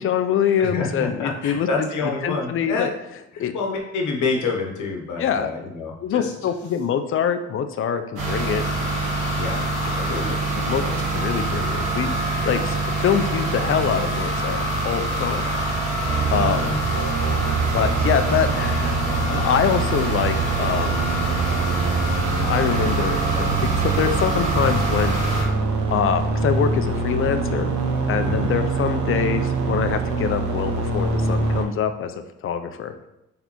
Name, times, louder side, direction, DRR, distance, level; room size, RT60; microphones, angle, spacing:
voice 1, 0.0-1.9 2.2-2.9 3.4-3.5 5.2-5.5 6.0-8.6 10.6-10.8 11.1-15.4 16.3-16.6 17.7-18.9 19.3-21.0 22.4-25.1 25.9-27.7 28.1-32.1 32.4-32.9, left 8 dB, 45° left, 9 dB, 0.4 m, -24 dB
voice 2, 0.6-2.9 3.3-6.3 9.4-10.3 10.8-10.9 16.6-16.8 28.2-28.5, left 4 dB, 75° left, 0 dB, 0.9 m, -28 dB
sound 1, 8.2-25.4, right 2 dB, 90° right, 1.2 m, -25 dB
sound 2, 16.0-31.6, right 3 dB, 75° right, 0.7 m, -25 dB
4.1 x 3.4 x 2.9 m, 0.91 s
cardioid pair, 90°, 30 cm